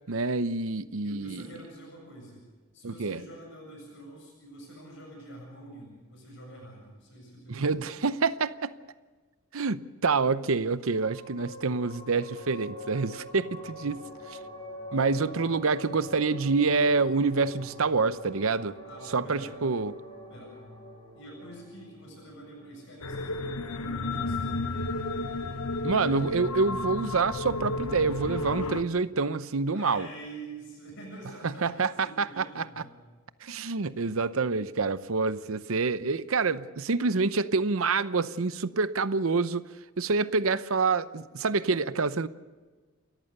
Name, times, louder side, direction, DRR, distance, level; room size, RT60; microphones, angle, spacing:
voice 1, 0.1-1.4 2.8-3.2 7.5-8.7 9.5-14.4 14.9-18.7 19.1-19.9 25.8-30.1 31.4-32.6 33.4-39.6 40.0-42.3, right 4 dB, 70° right, 14 dB, 0.7 m, -27 dB
voice 2, 1.0-2.4 2.7-7.8 18.8-19.6 20.3-20.5 21.1-24.6 29.7-32.9, right 1 dB, 55° left, -1 dB, 7.6 m, -46 dB
sound 1, 11.0-23.8, equal, 20° left, 5.7 m, -45 dB
sound 2, 23.0-28.8, left 2 dB, 85° left, 1.1 m, -32 dB
29.5 x 14.0 x 6.7 m, 1.4 s
head